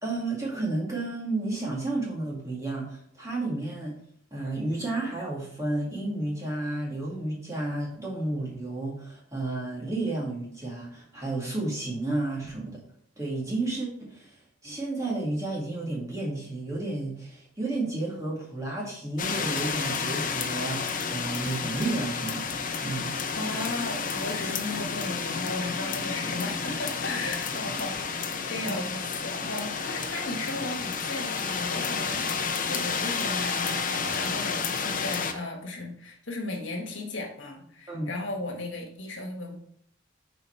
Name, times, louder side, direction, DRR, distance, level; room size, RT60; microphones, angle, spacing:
voice 1, 0.0-3.9 4.3-12.8 13.2-14.3 14.6-20.8 21.1-22.5 22.8-23.1 28.6-28.8 29.4-29.5 37.9-38.1, right 2 dB, 15° right, -4 dB, 2.1 m, -32 dB
sound 1, 19.2-35.3, left 5 dB, 40° left, 0.7 m, -31 dB
voice 2, 23.3-32.2 32.7-39.6, left 2 dB, 70° left, 1 dB, 1.6 m, -35 dB
7.0 x 4.4 x 4.5 m, 0.65 s
head